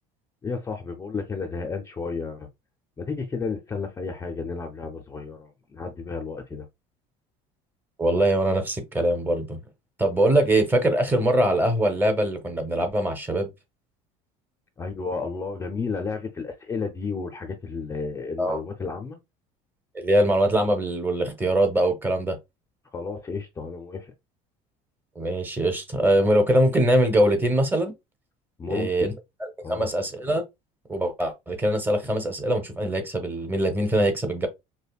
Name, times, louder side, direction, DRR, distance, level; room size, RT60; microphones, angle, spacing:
voice 1, 0.4-2.5 3.0-6.7 14.8-19.2 22.9-24.1 28.6-29.2 29.6-29.9, left 4 dB, 20° left, 0.5 m, -32 dB
voice 2, 8.0-9.6 10.0-13.5 18.4-18.6 19.9-22.4 25.2-27.9 28.7-29.1 29.4-30.4 30.9-34.5, right 1 dB, 10° right, 0.9 m, -22 dB
5.1 x 2.1 x 2.4 m
cardioid pair, 130°, 16 cm